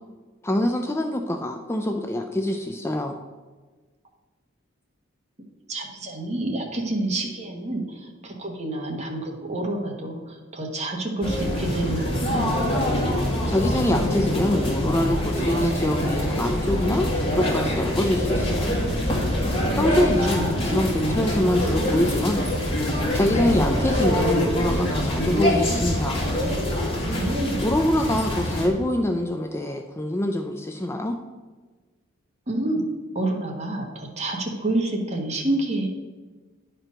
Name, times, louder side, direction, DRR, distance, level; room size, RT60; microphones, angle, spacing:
voice 1, 0.4-3.2 13.5-18.7 19.8-22.4 23.1-26.2 27.6-31.2, left 1 dB, 10° left, 4 dB, 0.4 m, -25 dB
voice 2, 5.7-12.5 19.9-20.0 20.3-20.8 27.0-27.6 32.5-32.8 33.1-35.9, right 1 dB, 35° right, 1 dB, 1.3 m, -28 dB
sound 1, 11.2-28.7, equal, 30° left, 2.0 m, -24 dB
10.0 x 4.5 x 5.1 m, 1.3 s
head